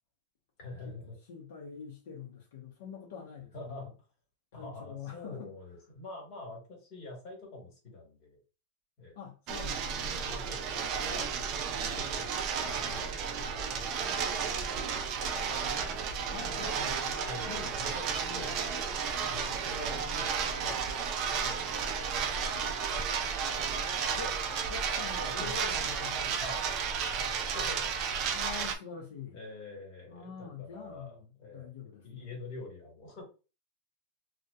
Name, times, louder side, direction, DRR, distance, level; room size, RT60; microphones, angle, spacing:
voice 1, 0.6-1.2 3.5-3.9 4.5-8.4 9.0-9.2 9.7-11.5 12.0-13.3 13.7-16.5 17.2-18.9 19.3-21.8 23.5-24.3 25.2-25.6 26.4-26.7 27.1-28.4 29.3-31.7 32.0-33.2, left 2 dB, 35° left, 1.2 m, -47 dB
voice 2, 1.3-3.9 4.5-5.5 9.1-10.0 16.3-17.7 18.2-18.6 19.4-20.0 24.2-24.4 24.7-26.7 28.3-29.4 30.1-32.4, left 6 dB, 70° left, 0.6 m, -45 dB
sound 1, 9.5-28.8, right 6 dB, 35° right, 0.3 m, -33 dB
2.7 x 2.1 x 2.2 m
supercardioid pair, 165°, 0 cm